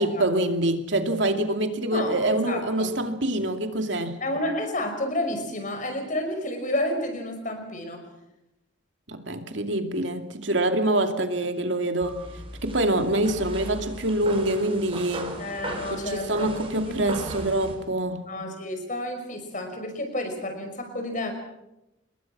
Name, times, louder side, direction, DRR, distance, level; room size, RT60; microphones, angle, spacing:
voice 1, 0.0-4.2 9.1-12.2 12.6-15.3 16.0-18.3, right 1 dB, 75° right, 6 dB, 2.5 m, -25 dB
voice 2, 1.9-2.9 4.2-8.0 15.4-16.5 16.9-17.1 18.3-21.3, left 1 dB, 45° left, 6 dB, 5.6 m, -30 dB
sound 1, 12.0-17.8, right 1 dB, 30° right, 5.0 m, -37 dB
28.0 x 21.0 x 6.1 m, 0.89 s
head